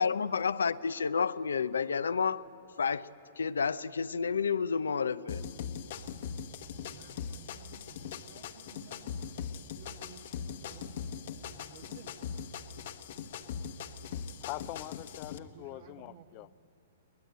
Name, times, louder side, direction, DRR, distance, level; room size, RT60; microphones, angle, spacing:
voice 1, 0.0-2.4 2.8-3.1 3.4-5.4, left 6 dB, 80° left, 0.6 m, -30 dB
sound 1, 5.3-15.4, left 7 dB, 60° left, 1.3 m, -41 dB
voice 2, 6.8-9.2 9.7-12.5 12.7-12.9 15.5-16.5, right 8 dB, 60° right, 1.7 m, -56 dB
voice 3, 14.4-16.5, left 17 dB, 40° left, 0.6 m, -43 dB
23.0 x 19.5 x 9.0 m
hypercardioid pair, 120°, 0 cm